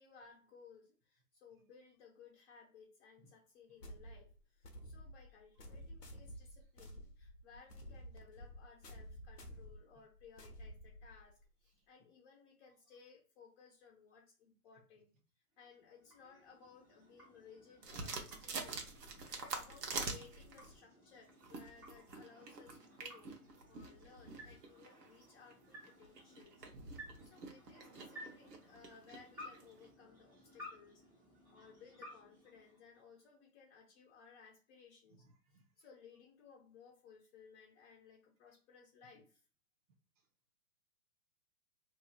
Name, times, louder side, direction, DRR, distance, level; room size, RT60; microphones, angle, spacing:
voice 1, 0.0-15.1 15.6-18.8 19.4-23.3 23.7-26.6 27.2-31.0 31.5-35.3 35.8-39.4, left 6 dB, 40° left, 0.8 m, -61 dB
sound 1, 3.8-11.5, equal, 85° left, 0.9 m, -52 dB
sound 2, 15.5-33.3, equal, 5° right, 1.4 m, -58 dB
sound 3, 17.8-20.8 21.3-29.9, right 3 dB, 85° right, 1.0 m, -46 dB
voice 2, 24.0-24.5 26.7-27.0 28.4-28.5 30.4-30.6 35.1-35.9 40.2-40.3, right 3 dB, 25° right, 0.5 m, -71 dB
2.7 x 2.6 x 2.4 m
hypercardioid pair, 135°, 47 cm